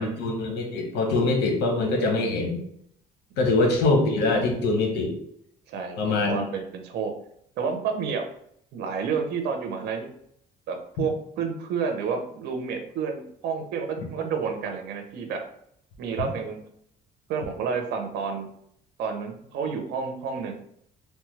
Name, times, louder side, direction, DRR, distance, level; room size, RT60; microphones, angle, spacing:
voice 1, 0.0-2.6 3.4-5.1 6.0-6.4 14.0-14.1, left 2 dB, 80° left, 2 dB, 0.9 m, -23 dB
voice 2, 5.7-7.1 7.6-8.2 8.7-10.1 10.7-11.1 11.4-15.4 16.0-16.6 17.3-18.5 19.0-20.5, right 6 dB, 80° right, 5 dB, 0.6 m, -30 dB
3.1 x 2.2 x 3.1 m, 0.69 s
cardioid pair, 110°, 17 cm